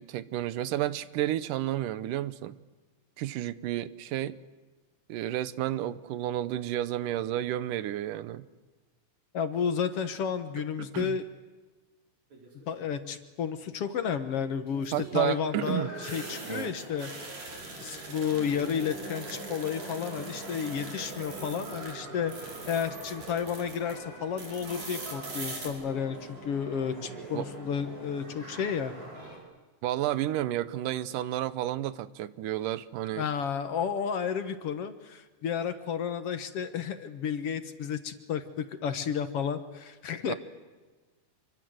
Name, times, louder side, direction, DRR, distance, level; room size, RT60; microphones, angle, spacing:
voice 1, 0.0-2.6 3.2-4.4 5.1-8.4 10.8-11.2 14.9-15.9 16.5-16.7 27.3-27.5 29.8-33.3 40.3-40.4, right 13 dB, 85° right, 2.5 m, -31 dB
voice 2, 9.3-11.3 12.7-17.1 17.8-28.9 33.2-40.3, left 7 dB, 55° left, 2.0 m, -32 dB
sound 1, 12.3-12.8 14.7-21.9 22.2-23.9 24.4-25.7, right 3 dB, 60° right, 6.3 m, -44 dB
sound 2, 15.6-29.4, right 2 dB, 25° right, 6.2 m, -43 dB
26.5 x 24.0 x 8.0 m
omnidirectional pair, 3.7 m